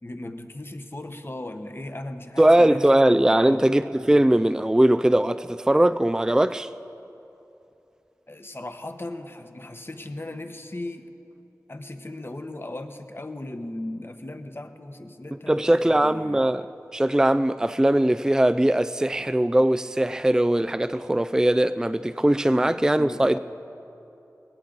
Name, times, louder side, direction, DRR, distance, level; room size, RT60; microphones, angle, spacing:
voice 1, 0.0-3.0 3.4-3.7 8.3-11.1 11.7-16.4 22.5-23.4, left 1 dB, 40° left, 1.0 m, -37 dB
voice 2, 2.4-6.7 15.5-16.6 16.9-23.4, right 1 dB, 10° right, 0.3 m, -20 dB
19.5 x 17.0 x 4.0 m
cardioid pair, 40°, 6 cm